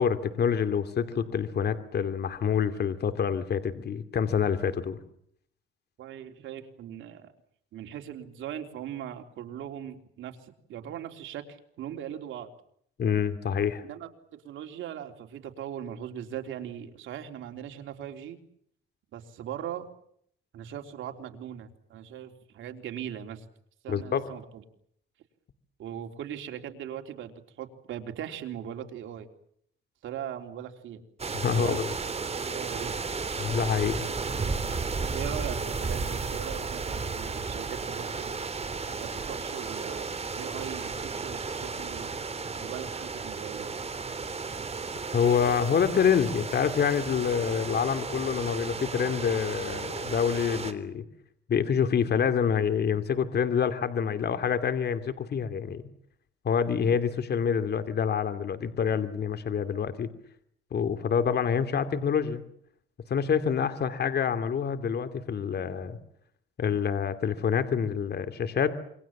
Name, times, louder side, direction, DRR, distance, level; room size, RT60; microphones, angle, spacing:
voice 1, 0.0-5.0 13.0-13.8 23.9-24.2 31.4-31.9 33.4-34.1 45.1-51.0 51.5-55.8 56.4-60.1 60.7-62.4 63.1-66.0 66.6-68.7, left 7 dB, 55° left, 10 dB, 2.7 m, -27 dB
voice 2, 6.0-7.3 7.7-12.5 13.8-18.4 19.1-19.9 20.5-23.5 23.8-24.6 25.8-29.3 30.0-31.0 31.5-32.0 32.5-33.0 35.1-38.4 39.0-42.2 42.6-43.7, right 10 dB, 80° right, 5 dB, 3.6 m, -40 dB
sound 1, 31.2-50.7, right 4 dB, 30° right, 3.4 m, -34 dB
27.5 x 24.5 x 7.4 m, 0.68 s
cardioid pair, 90°, 20 cm